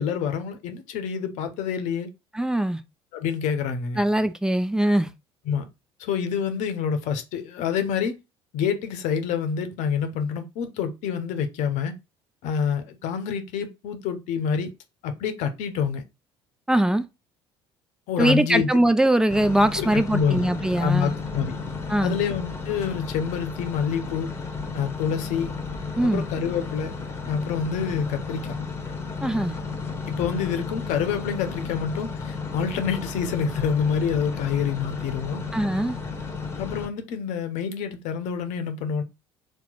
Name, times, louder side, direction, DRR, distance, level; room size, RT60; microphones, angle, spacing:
voice 1, 0.0-2.1 3.1-4.0 5.5-5.7 6.0-8.2 8.5-11.9 12.4-14.7 15.0-16.0 18.1-18.7 19.8-20.5 20.8-21.5 22.0-24.3 24.7-25.5 26.0-26.9 27.2-28.5 30.1-35.4 36.6-39.0, left 7 dB, 60° left, 0.7 m, -27 dB
voice 2, 2.3-2.8 4.0-5.1 16.7-17.1 18.2-21.1 21.9-22.2 26.0-26.3 29.2-29.6 35.5-36.0, right 1 dB, 5° right, 0.4 m, -21 dB
sound 1, 19.3-36.9, left 4 dB, 20° left, 1.0 m, -33 dB
2.9 x 2.0 x 4.0 m
hypercardioid pair, 60°, 14 cm